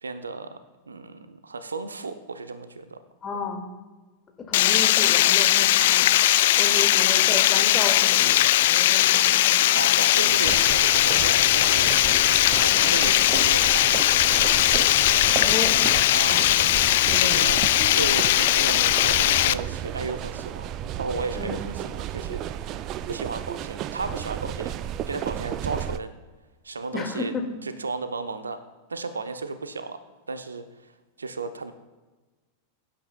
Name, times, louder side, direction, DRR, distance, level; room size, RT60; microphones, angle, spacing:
voice 1, 0.0-0.6 0.9-3.0 9.7-12.3 12.5-14.3 16.1-16.4 17.2-17.6 17.9-20.7 21.0-22.7 23.1-26.1 26.6-27.3 27.6-28.6 28.9-30.0 30.3-31.7, right 3 dB, 75° right, 10 dB, 0.8 m, -34 dB
voice 2, 3.2-3.6 4.4-6.2 6.6-9.9 10.2-10.5 12.7-13.2 15.2-15.8 16.3-16.7 17.1-17.6 21.4-21.6 26.9-27.6, left 4 dB, 20° left, 3 dB, 2.0 m, -33 dB
Water, 4.5-19.5, left 14 dB, 55° left, 0.3 m, -19 dB
sound 1, 10.4-26.0, right 11 dB, 35° right, 0.4 m, -33 dB
21.5 x 11.5 x 2.3 m, 1.3 s
figure-of-eight pair, 90°, 0 cm